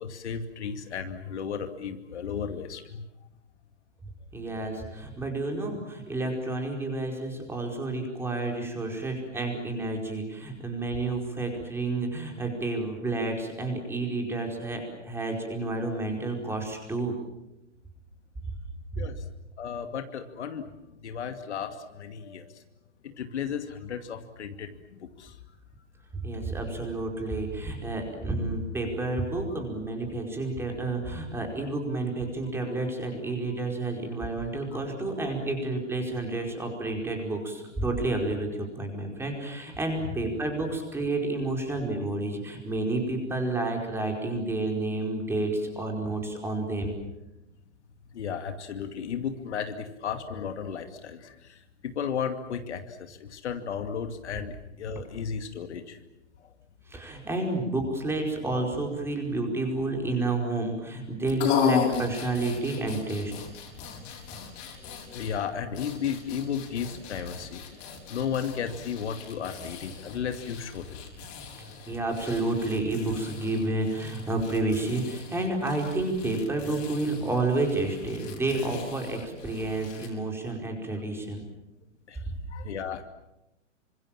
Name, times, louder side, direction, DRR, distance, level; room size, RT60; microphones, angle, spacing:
voice 1, 0.0-3.1 19.0-19.2 19.6-20.7 21.0-22.5 23.0-24.7 25.0-25.3 40.0-40.2 48.1-51.6 51.8-56.0 64.8-67.8 68.1-71.0 82.1-82.2 82.5-83.0, left 7 dB, 60° left, 7 dB, 2.5 m, -34 dB
voice 2, 4.3-17.1 18.9-19.0 26.2-47.0 56.9-63.3 71.6-81.4, right 2 dB, 5° right, 2 dB, 4.9 m, -30 dB
sound 1, 61.2-80.1, left 7 dB, 35° left, 6.7 m, -37 dB
27.5 x 25.5 x 7.4 m, 0.91 s
hypercardioid pair, 145°, 37 cm